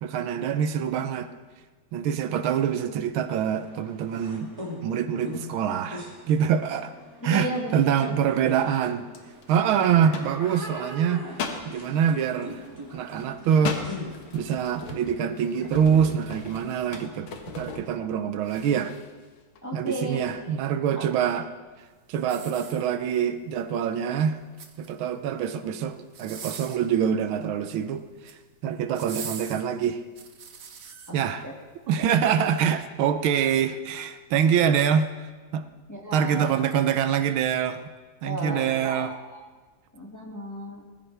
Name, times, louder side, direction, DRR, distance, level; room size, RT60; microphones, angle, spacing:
voice 1, 0.0-1.3 1.9-4.5 4.8-6.9 7.2-9.1 9.5-11.3 11.6-12.6 12.9-13.8 14.3-17.3 17.6-18.9 19.7-21.5 22.1-24.4 24.8-28.1 28.6-30.0 31.1-31.5 31.9-35.1 35.5-35.7 36.1-37.8 38.2-39.1, right 8 dB, 85° right, 10 dB, 1.6 m, -25 dB
sound 1, 3.5-17.2, equal, 15° right, 2.4 m, -42 dB
voice 2, 7.2-7.7 8.0-8.2 19.6-20.3 20.9-21.3 31.1-31.2 31.4-31.5 32.0-32.1 35.9-36.5 38.2-39.4 39.9-40.8, right 1 dB, 10° left, -2 dB, 1.8 m, -34 dB
sound 2, 8.2-8.6 9.1-10.9 11.3-11.7 12.2-18.2 18.4-19.1 19.6-19.7 20.0-20.3, left 5 dB, 90° left, 2.1 m, -38 dB
sound 3, 22.2-23.3 24.4-25.1 26.1-26.9 28.0-28.4 28.9-31.1 31.7-31.8, right 6 dB, 50° right, 1.2 m, -41 dB
19.5 x 14.5 x 3.4 m, 1.3 s
omnidirectional pair, 2.2 m